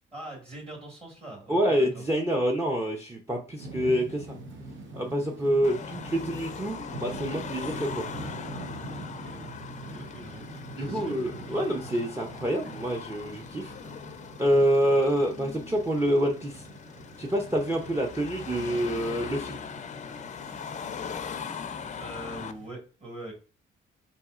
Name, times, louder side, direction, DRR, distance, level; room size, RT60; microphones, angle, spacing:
voice 1, 0.1-2.0 9.1-9.5 9.8-10.4 10.7-11.7 21.9-23.3, right 1 dB, 30° right, 0 dB, 1.7 m, -43 dB
voice 2, 1.5-4.3 4.9-8.1 10.7-13.7 14.4-16.7 17.2-19.6, equal, 15° right, 2 dB, 0.6 m, -27 dB
sound 1, 3.6-22.7, right 2 dB, 70° right, 0.8 m, -44 dB
Car passing by / Traffic noise roadway noise / Engine, 5.6-22.5, left 6 dB, 35° left, 0.5 m, -40 dB
4.0 x 4.0 x 2.4 m, 0.35 s
cardioid pair, 90°, 20 cm